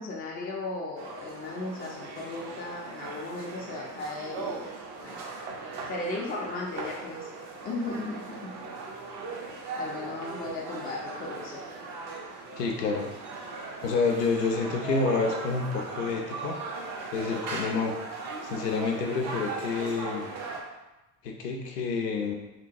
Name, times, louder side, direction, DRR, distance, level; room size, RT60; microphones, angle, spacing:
voice 1, 0.0-4.7 5.0-5.2 5.9-7.3 7.6-8.6 9.7-11.6 17.3-17.4, left 2 dB, 20° left, -3 dB, 0.5 m, -36 dB
sound 1, 1.0-20.6, right 3 dB, 45° right, 0.6 m, -39 dB
voice 2, 12.6-13.0 13.8-16.6 17.1-17.9 18.4-20.3 21.2-22.3, left 4 dB, 75° left, 2 dB, 0.6 m, -28 dB
2.9 x 2.2 x 2.6 m, 1.0 s
figure-of-eight pair, 70°, 49 cm